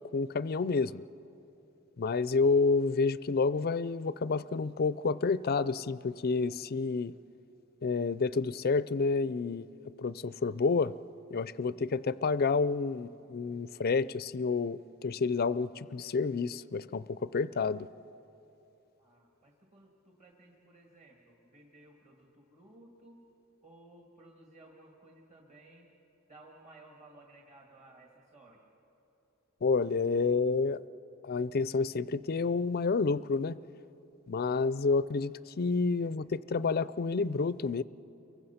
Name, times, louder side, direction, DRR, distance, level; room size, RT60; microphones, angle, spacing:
voice 1, 0.1-1.0 2.0-7.1 7.8-9.7 10.0-10.9 11.3-17.9 29.6-30.8 31.2-33.6 34.3-37.8, left 4 dB, 45° left, 17 dB, 0.5 m, -29 dB
voice 2, 0.7-1.0 19.0-23.2 23.6-25.9 26.3-28.7 34.4-34.7 36.0-36.2, right 2 dB, 35° right, 0 dB, 2.1 m, -57 dB
29.5 x 23.5 x 5.8 m, 2.9 s
head